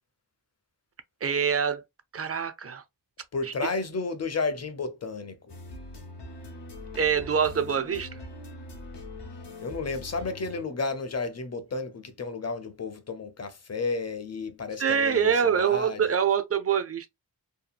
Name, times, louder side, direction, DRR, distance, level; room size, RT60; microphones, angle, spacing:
voice 1, 1.2-1.8 2.1-2.8 7.0-8.1 14.8-17.1, right 7 dB, 35° right, 0.4 m, -25 dB
voice 2, 3.3-5.5 9.6-16.0, left 3 dB, 40° left, 0.6 m, -32 dB
sound 1, 5.5-10.6, left 2 dB, 75° left, 0.7 m, -42 dB
2.8 x 2.3 x 2.3 m
wide cardioid pair, 75°, 42 cm